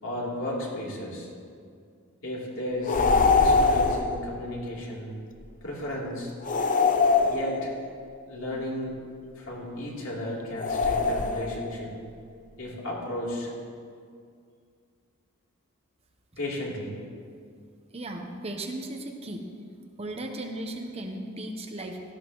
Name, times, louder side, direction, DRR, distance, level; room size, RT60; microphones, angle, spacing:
voice 1, 0.0-1.3 2.2-5.1 5.6-6.3 7.2-7.7 8.3-8.9 9.4-12.0 12.6-13.5 16.4-17.0, left 1 dB, 65° left, -5 dB, 3.2 m, -34 dB
sound 1, 2.8-4.2 6.4-7.9 10.6-11.7, left 4 dB, 35° left, 0.6 m, -23 dB
voice 2, 17.9-19.5 20.0-22.0, right 1 dB, 30° right, 3 dB, 0.9 m, -36 dB
17.0 x 13.5 x 3.1 m, 2.2 s
head